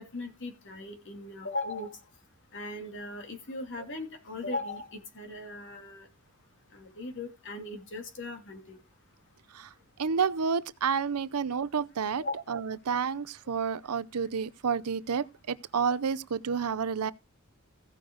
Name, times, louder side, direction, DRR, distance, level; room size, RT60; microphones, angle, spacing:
voice 1, 0.0-2.0 2.5-6.1 6.7-8.8 12.2-12.4, left 2 dB, 55° left, 2.7 m, -38 dB
voice 2, 10.0-17.1, right 6 dB, 85° right, 0.6 m, -30 dB
16.0 x 6.3 x 3.9 m
head